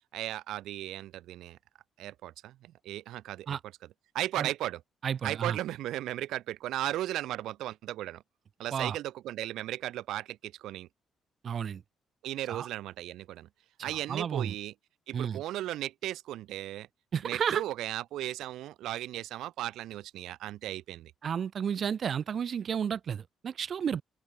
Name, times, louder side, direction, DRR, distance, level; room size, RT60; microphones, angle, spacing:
voice 1, 0.1-1.6 2.0-3.6 4.1-4.8 5.2-8.2 8.6-10.9 12.2-13.5 13.8-14.7 15.1-16.9 17.2-21.1, right 14 dB, 85° right, 2.1 m, -36 dB
voice 2, 5.0-5.6 8.7-9.0 11.4-11.8 12.5-12.7 13.8-14.5 15.1-15.4 17.1-17.6 21.2-24.0, right 7 dB, 55° right, 1.2 m, -32 dB
open air
cardioid pair, 90°, 0 cm